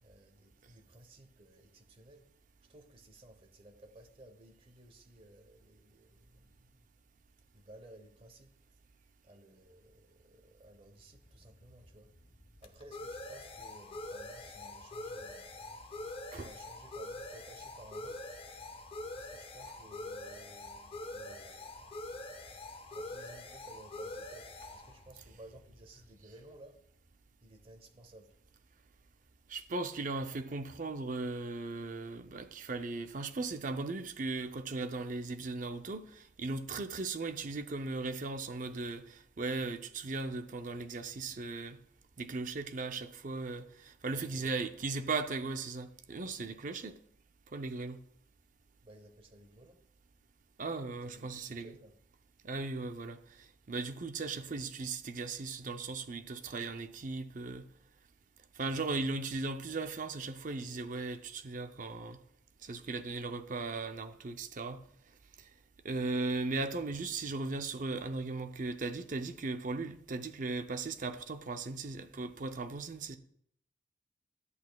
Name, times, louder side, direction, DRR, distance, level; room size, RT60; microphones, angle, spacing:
voice 1, 0.0-2.3 2.6-6.9 7.5-8.5 9.2-12.1 12.6-15.8 16.4-18.3 19.2-22.2 22.9-26.8 27.4-28.4 44.1-44.6 48.8-49.8 51.1-51.9, right 1 dB, 30° right, 1.0 m, -56 dB
sound 1, 11.0-26.4, left 2 dB, 30° left, 0.6 m, -45 dB
voice 2, 29.5-41.8 42.2-47.0 47.5-48.0 50.6-51.7 52.4-57.7 58.6-62.2 62.6-64.8 65.4-65.5 65.8-73.2, right 3 dB, 45° right, 0.6 m, -37 dB
11.0 x 8.1 x 2.3 m
head